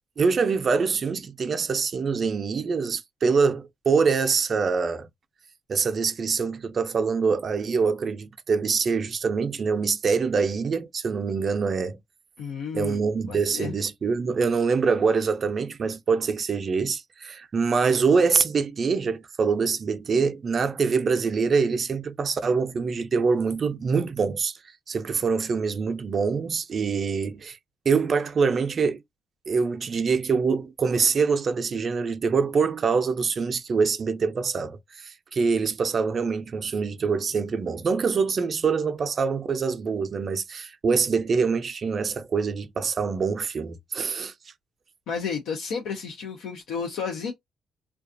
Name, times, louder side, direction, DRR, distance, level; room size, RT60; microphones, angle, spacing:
voice 1, 0.2-5.1 5.7-12.0 12.7-24.6 24.9-27.6 27.9-29.0 29.5-44.3, right 5 dB, 45° right, 0.4 m, -24 dB
voice 2, 12.4-13.0 13.3-13.7 45.1-47.3, left 6 dB, 85° left, 0.5 m, -32 dB
2.4 x 2.2 x 2.5 m
cardioid pair, 90°, 0 cm